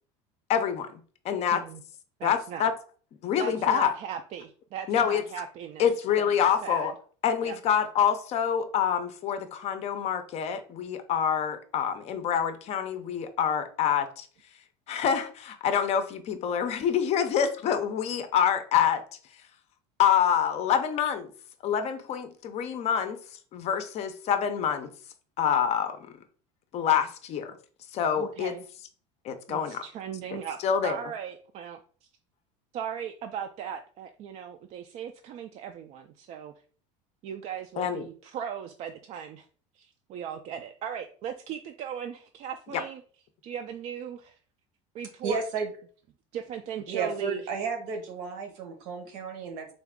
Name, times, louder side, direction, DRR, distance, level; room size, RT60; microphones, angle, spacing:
voice 1, 0.5-1.6 2.2-2.7 3.2-4.0 4.9-5.2 5.8-6.9 7.2-14.3 14.9-19.0 20.0-21.3 21.6-23.2 23.5-24.9 25.4-26.1 26.7-27.6 27.9-28.5 29.2-29.8 30.3-31.0 37.8-38.0 42.7-42.8, left 8 dB, 40° left, 0.5 m, -26 dB
voice 2, 2.2-2.7 3.4-5.9 6.2-6.3 6.6-6.9 7.4-7.6 28.2-28.6 29.5-30.6 30.8-31.8 32.7-36.5 37.2-39.5 39.7-43.0 43.4-44.4 44.9-45.4 46.3-47.4, right 8 dB, 45° right, 0.4 m, -38 dB
voice 3, 45.2-45.7 46.9-49.7, right 5 dB, 80° right, 1.1 m, -32 dB
3.8 x 2.3 x 3.5 m
cardioid pair, 135°, 17 cm